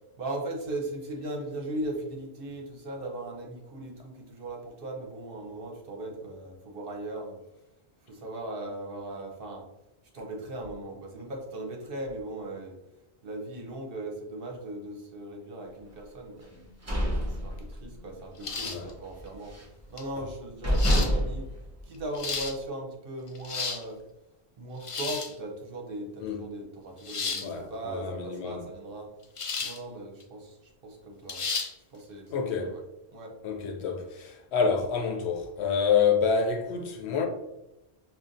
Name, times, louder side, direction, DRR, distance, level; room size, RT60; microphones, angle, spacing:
voice 1, 0.2-7.4 8.1-9.6 10.1-12.8 13.2-16.5 17.2-19.5 19.9-21.5 21.9-24.0 24.6-29.1 29.6-30.6 30.8-31.5 31.9-32.3 32.6-32.8 33.1-33.3, right 1 dB, 60° right, 0.9 m, -38 dB
sound 1, 16.5-18.1 18.4-18.7 19.0-19.8 20.3-20.4 20.6-22.5, equal, 15° right, 0.8 m, -28 dB
sound 2, 18.4-18.9 20.0-20.1 20.7-21.1 21.9-22.5 23.3-23.8 24.8-25.3 27.0-27.5 29.4-29.8 30.2-30.3 31.3-31.7, left 4 dB, 60° left, 0.3 m, -32 dB
voice 2, 27.4-28.6 32.3-32.8 33.4-37.3, left 6 dB, 75° left, 0.9 m, -28 dB
5.4 x 2.3 x 2.5 m
omnidirectional pair, 1.1 m